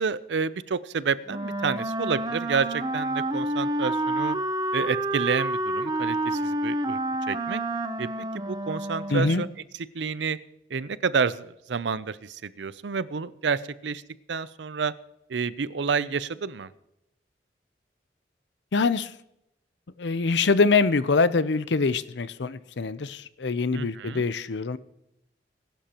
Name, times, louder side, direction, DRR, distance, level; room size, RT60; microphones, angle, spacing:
voice 1, 0.0-4.4 4.7-7.0 7.3-7.6 8.0-9.5 9.7-10.4 10.7-14.0 14.3-14.9 15.3-16.7 23.7-24.3, right 5 dB, 90° right, 0.6 m, -29 dB
Wind instrument woodwind instrument, 1.3-9.5, right 1 dB, 20° right, 0.7 m, -29 dB
voice 2, 9.1-9.4 18.7-19.1 20.0-24.8, left 4 dB, 85° left, 0.6 m, -24 dB
21.0 x 11.5 x 3.0 m
head